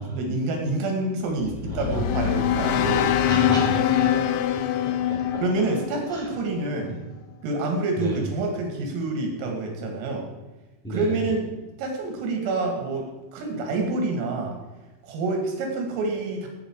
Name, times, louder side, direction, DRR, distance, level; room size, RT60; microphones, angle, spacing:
voice 1, 0.0-3.1 3.5-3.8 4.1-4.3 5.4-7.0 7.4-10.3 10.9-14.6 15.0-16.5, right 3 dB, 90° right, 2 dB, 5.1 m, -27 dB
sound 1, 1.4-6.6, left 10 dB, 80° left, 3.1 m, -24 dB
voice 2, 1.7-4.4 4.8-5.4 6.1-6.3 8.0-8.2 10.8-11.2, right 1 dB, ahead, -4 dB, 3.3 m, -33 dB
18.0 x 8.3 x 4.9 m, 1.2 s
omnidirectional pair, 5.8 m